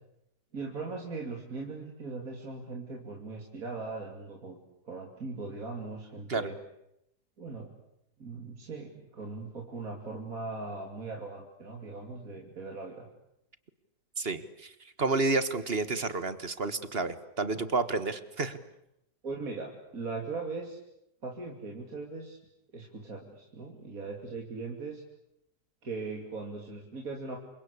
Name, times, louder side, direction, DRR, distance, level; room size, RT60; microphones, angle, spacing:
voice 1, 0.5-4.6 4.8-6.5 7.4-7.7 8.2-13.1 19.2-20.8 21.2-22.4 22.7-25.0 25.8-27.4, right 3 dB, 55° right, 1 dB, 3.3 m, -39 dB
voice 2, 14.2-18.6, right 3 dB, 40° right, 13 dB, 1.6 m, -30 dB
28.5 x 25.0 x 8.4 m, 0.80 s
omnidirectional pair, 1.7 m